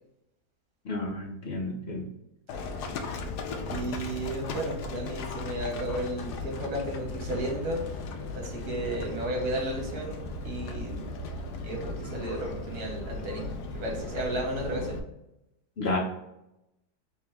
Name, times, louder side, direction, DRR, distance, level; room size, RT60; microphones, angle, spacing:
voice 1, 0.8-2.0 15.8-16.0, left 2 dB, 55° left, -1 dB, 0.7 m, -31 dB
Livestock farm animals working animals, 2.5-15.0, left 3 dB, 75° left, 1.1 m, -37 dB
voice 2, 3.7-8.0 8.3-11.0 11.6-15.0, right 1 dB, 60° right, -1 dB, 1.6 m, -33 dB
3.5 x 2.9 x 3.2 m, 0.87 s
omnidirectional pair, 1.8 m